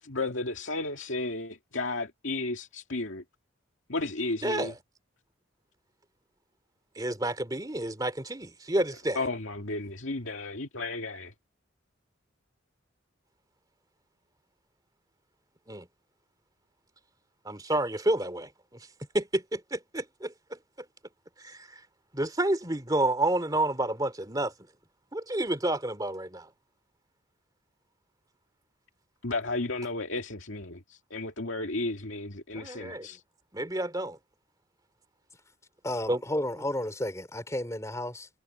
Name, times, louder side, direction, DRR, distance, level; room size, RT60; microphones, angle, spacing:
voice 1, 0.0-3.2 3.9-4.7 9.2-11.3 29.2-33.2, left 2 dB, 70° left, 2.2 m, -33 dB
voice 2, 4.4-4.7 7.0-9.3 15.7-15.9 17.4-18.5 19.1-20.3 21.4-21.7 22.1-24.5 25.1-26.5 32.6-33.1 33.5-34.2 36.1-36.2, right 1 dB, 20° right, 2.6 m, -29 dB
voice 3, 35.8-38.3, left 1 dB, 15° left, 4.4 m, -32 dB
head